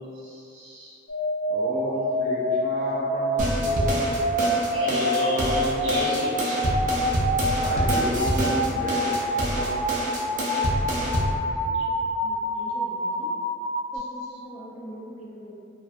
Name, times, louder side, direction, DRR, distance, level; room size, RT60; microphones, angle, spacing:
voice 1, 0.2-0.9 4.7-7.0, right 1 dB, 80° right, -11 dB, 0.7 m, -30 dB
sound 1, 1.1-14.0, equal, 60° left, 1.0 m, -27 dB
voice 2, 1.5-4.1 7.6-9.9, left 1 dB, 75° left, -13 dB, 0.7 m, -32 dB
sound 2, 3.4-11.4, right 1 dB, 40° right, 0.4 m, -27 dB
voice 3, 11.5-11.9 12.2-13.3 13.9-15.5, equal, 30° left, -4 dB, 0.4 m, -43 dB
2.4 x 2.3 x 2.5 m, 2.5 s
head